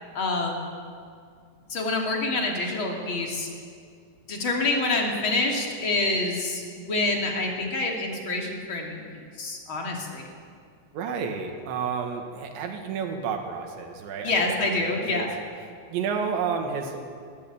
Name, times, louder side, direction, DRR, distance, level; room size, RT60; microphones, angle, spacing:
voice 1, 0.1-0.7 1.7-3.5 4.3-9.0 9.4-10.3 14.2-15.3, left 2 dB, 35° left, 0 dB, 2.9 m, -27 dB
voice 2, 10.9-15.3 15.9-17.0, right 6 dB, 80° right, 4 dB, 4.1 m, -31 dB
20.0 x 15.5 x 8.8 m, 2.2 s
omnidirectional pair, 5.0 m